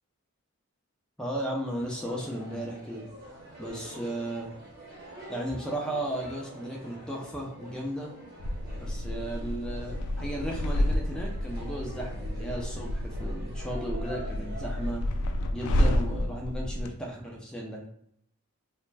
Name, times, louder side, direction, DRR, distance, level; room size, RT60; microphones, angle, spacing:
voice 1, 1.2-3.0 3.6-4.5 5.3-8.1 8.7-15.1 15.5-17.9, right 1 dB, 5° left, -2 dB, 0.4 m, -35 dB
sound 1, 1.8-14.9, right 1 dB, 45° right, 0.9 m, -46 dB
sound 2, 8.4-16.9, left 1 dB, 85° left, 0.3 m, -30 dB
2.4 x 2.1 x 3.2 m, 0.70 s
head